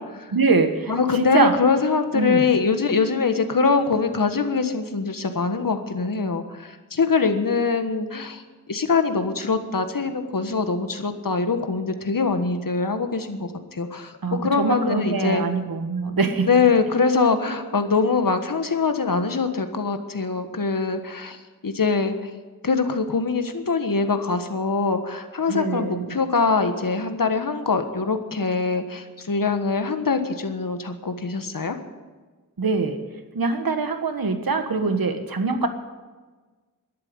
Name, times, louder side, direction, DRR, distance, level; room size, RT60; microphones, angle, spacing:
voice 1, 0.3-1.5 2.1-2.4 14.2-16.5 25.5-26.1 32.6-33.0 33.3-35.7, right 4 dB, 80° right, 7 dB, 1.5 m, -23 dB
voice 2, 0.9-15.4 16.4-22.3 22.6-31.8, left 4 dB, 70° left, 8 dB, 1.5 m, -23 dB
12.5 x 11.5 x 8.8 m, 1.3 s
wide cardioid pair, 75°, 35 cm